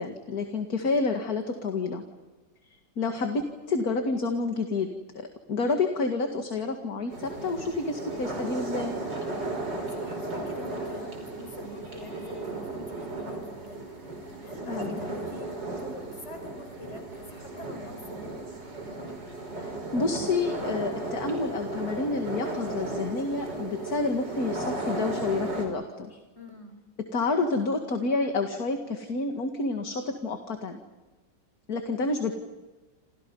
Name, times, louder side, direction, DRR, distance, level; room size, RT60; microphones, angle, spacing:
voice 1, 0.0-2.0 3.0-9.0 14.7-15.0 19.6-26.2 27.1-30.8 31.7-32.3, left 3 dB, 55° left, 5 dB, 2.4 m, -29 dB
sound 1, 7.1-25.7, right 2 dB, 70° right, 5.8 m, -35 dB
voice 2, 9.6-18.4 26.4-26.8, left 2 dB, 35° left, 5 dB, 5.9 m, -46 dB
29.5 x 28.0 x 5.5 m, 1.2 s
omnidirectional pair, 2.0 m